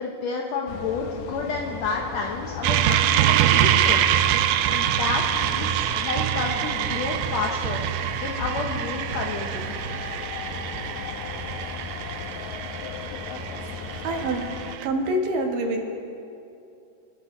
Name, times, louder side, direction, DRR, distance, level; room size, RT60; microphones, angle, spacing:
voice 1, 0.0-4.3 4.7-9.7, left 4 dB, 70° left, -1 dB, 1.6 m, -30 dB
sound 1, 0.7-14.8, left 7 dB, 90° left, 1.6 m, -37 dB
sound 2, 2.6-14.9, right 11 dB, 90° right, 1.8 m, -25 dB
voice 2, 14.0-14.5 14.8-15.9, right 1 dB, 65° right, 2 dB, 2.8 m, -25 dB
26.0 x 13.0 x 3.2 m, 2.7 s
omnidirectional pair, 4.3 m